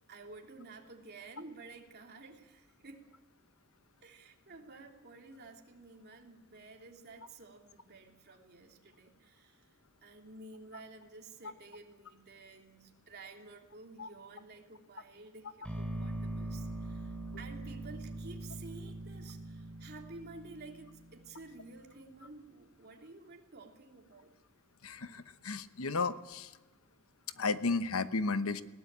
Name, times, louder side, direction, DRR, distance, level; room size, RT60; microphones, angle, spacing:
voice 1, 0.1-3.1 4.0-24.3, right 3 dB, 50° right, 2 dB, 3.0 m, -52 dB
sound 1, 15.6-21.7, right 1 dB, 5° left, 3.6 m, -42 dB
voice 2, 24.8-26.5 27.4-28.6, left 3 dB, 80° left, 12 dB, 1.0 m, -33 dB
20.5 x 18.0 x 8.8 m, 1.2 s
head